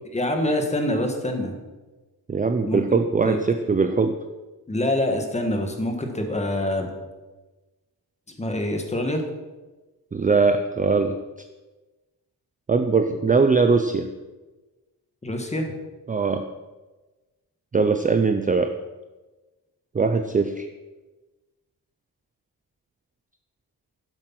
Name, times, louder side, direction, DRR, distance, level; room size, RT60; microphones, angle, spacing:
voice 1, 0.1-1.5 2.6-2.8 3.2-3.4 4.7-6.9 8.4-9.2 15.2-15.7, left 1 dB, 15° left, 4 dB, 1.5 m, -25 dB
voice 2, 2.3-4.1 10.1-11.1 12.7-14.1 16.1-16.4 17.7-18.7 19.9-20.7, right 4 dB, 20° right, 7 dB, 0.4 m, -21 dB
12.0 x 7.6 x 6.0 m, 1.2 s
wide cardioid pair, 170°, 39 cm